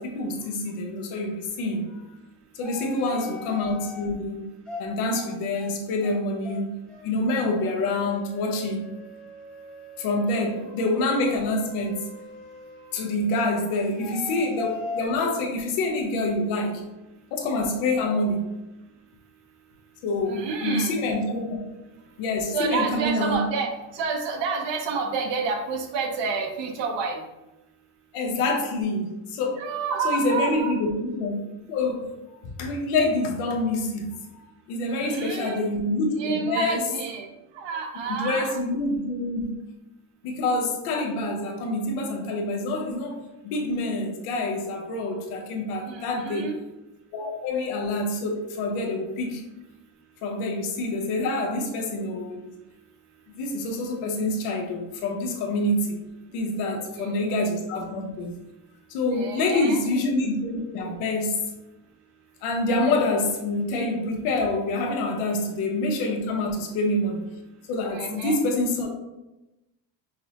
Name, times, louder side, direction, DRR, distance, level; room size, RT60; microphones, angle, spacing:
voice 1, 0.0-2.1 2.5-4.5 4.8-6.7 7.0-8.8 10.0-12.0 12.9-16.9 17.3-18.6 20.0-21.6 22.2-23.4 28.1-29.6 30.0-31.4 31.7-36.9 38.1-39.6 40.2-46.5 47.1-49.4 50.2-52.4 53.4-56.0 56.3-58.4 58.9-61.4 62.4-67.2 67.7-68.9, left 2 dB, 85° left, 1 dB, 1.0 m, -26 dB
sound 1, 2.6-4.1 4.7-4.8 5.1-5.3 5.5-5.7 6.0-6.2 6.4-6.6 6.9-7.1 7.3-13.1 13.7-15.1, left 3 dB, ahead, 0.7 m, -40 dB
voice 2, 20.2-21.0 22.5-27.2 29.6-30.7 34.9-35.6 36.2-37.3 37.5-38.6 45.9-46.6 56.7-57.1 59.1-59.8 67.9-68.4, right 5 dB, 60° right, 3 dB, 0.8 m, -29 dB
5.3 x 2.1 x 2.9 m, 1.0 s
cardioid pair, 125°, 49 cm